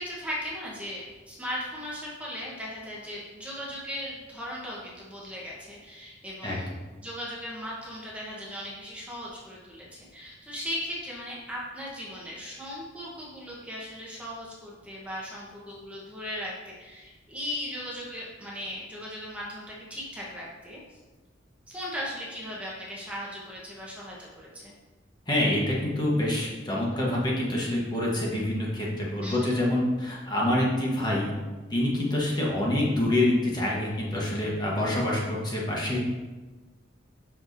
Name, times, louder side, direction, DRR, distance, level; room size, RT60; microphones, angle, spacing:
voice 1, 0.0-6.7 7.0-21.0 21.7-24.7 29.2-29.5, equal, 5° right, -5 dB, 1.0 m, -38 dB
voice 2, 25.3-31.3 31.7-36.0, left 1 dB, 20° left, -4 dB, 1.1 m, -26 dB
7.8 x 5.9 x 2.6 m, 1.2 s
head